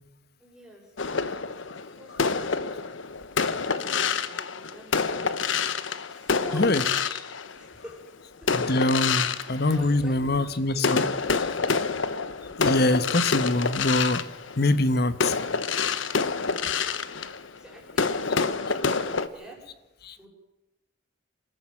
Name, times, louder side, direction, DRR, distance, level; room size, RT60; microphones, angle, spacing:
voice 1, 0.4-1.5 2.0-2.6 3.4-5.5 6.1-6.9 7.5-8.0 9.7-10.9 11.2-12.0 16.7-17.0 17.6-18.2 18.7-19.6 20.2-20.3, right 1 dB, 5° right, -2 dB, 6.6 m, -46 dB
sound 1, 1.0-7.9 8.4-10.4 10.8-19.3, left 5 dB, 80° left, 1.0 m, -27 dB
voice 2, 8.5-11.0 12.6-14.2 14.6-15.3 20.0-20.1, left 2 dB, 55° left, 13 dB, 1.2 m, -24 dB
27.5 x 14.0 x 7.4 m, 0.99 s
head